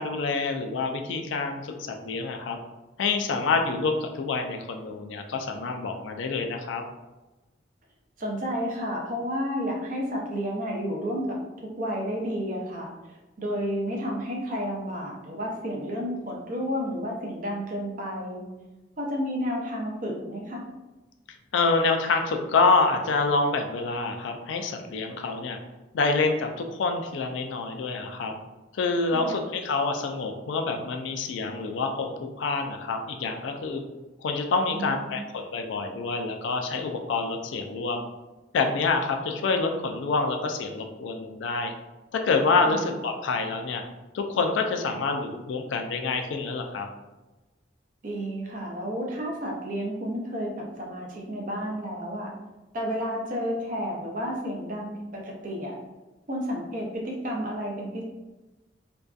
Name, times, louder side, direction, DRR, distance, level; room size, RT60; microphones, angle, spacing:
voice 1, 0.0-2.6 3.0-6.8 21.5-25.6 25.9-28.3 28.7-33.8 34.2-38.0 38.5-41.7 42.1-43.8 44.1-46.9, left 4 dB, 80° left, 4 dB, 0.3 m, -27 dB
voice 2, 8.2-11.4 11.6-12.9 13.4-18.4 19.0-20.6 29.1-29.4 34.7-35.2 42.7-42.8 48.0-52.3 52.7-55.8 56.3-58.0, equal, 45° right, -1 dB, 0.5 m, -31 dB
2.6 x 2.2 x 2.3 m, 1.1 s
head